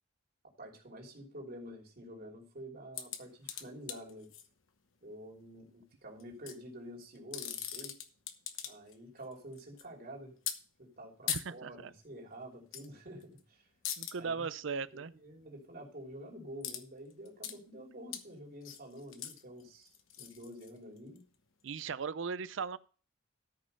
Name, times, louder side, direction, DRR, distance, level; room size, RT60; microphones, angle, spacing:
voice 1, 0.6-4.3 5.0-8.0 8.7-10.4 10.8-13.7 14.2-14.5 14.9-21.2, equal, 50° right, 3.1 m, -48 dB
sound 1, 2.9-4.5 6.2-6.6 7.1-8.9 9.2-9.8 10.5-10.6 11.3-11.4 12.7-12.9 13.2-13.4 13.8-14.1 16.6-16.8 17.1-17.6 18.1-18.2 18.6-21.2 21.8-21.9, left 10 dB, 85° left, 1.1 m, -40 dB
voice 2, 11.3-11.9 14.0-15.1 21.6-22.8, right 5 dB, 70° right, 0.5 m, -38 dB
13.0 x 5.4 x 5.4 m
head